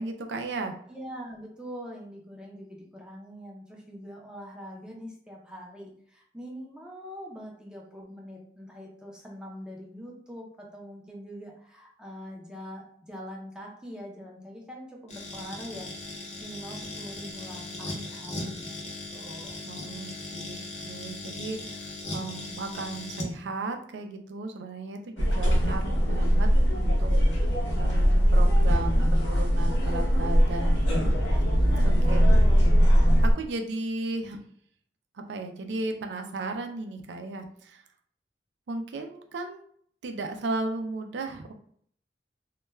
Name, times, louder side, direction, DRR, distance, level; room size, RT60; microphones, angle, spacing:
voice 1, 0.0-0.7 19.6-20.6 20.8-31.4 31.8-32.2 33.2-34.4 35.1-37.8 38.7-39.6 40.0-41.5, right 2 dB, 70° right, 5 dB, 0.4 m, -35 dB
voice 2, 0.9-18.7 19.1-19.6 31.8-32.7, equal, 5° right, -1 dB, 0.5 m, -43 dB
sound 1, 15.1-23.3, left 2 dB, 40° left, 0.7 m, -38 dB
sound 2, 25.2-33.3, equal, 85° left, 0.7 m, -21 dB
2.2 x 2.2 x 3.1 m, 0.62 s
head